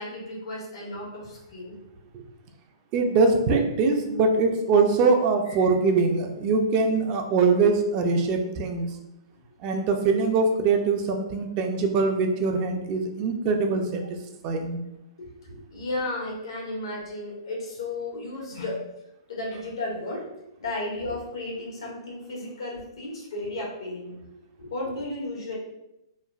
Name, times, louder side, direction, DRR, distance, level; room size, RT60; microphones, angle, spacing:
voice 1, 0.0-1.8 5.5-5.7 9.6-9.7 15.2-18.8 19.3-20.3 20.6-24.3 24.6-25.6, left 2 dB, 75° left, -3 dB, 1.0 m, -34 dB
voice 2, 2.9-9.0 9.6-14.0 14.4-14.8, right 4 dB, 35° right, 4 dB, 0.4 m, -23 dB
3.1 x 2.2 x 2.3 m, 0.90 s
hypercardioid pair, 120°, 3 cm